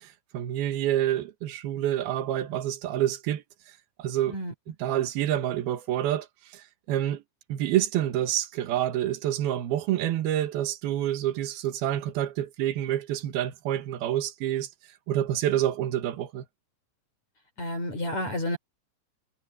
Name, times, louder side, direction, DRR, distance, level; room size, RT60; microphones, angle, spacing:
voice 1, 0.0-3.4 4.0-4.3 4.8-6.3 6.5-7.2 7.5-14.7 15.1-16.4, right 12 dB, 60° right, 2.9 m, -28 dB
voice 2, 17.6-18.6, left 1 dB, 35° left, 4.8 m, -30 dB
omnidirectional pair, 5.9 m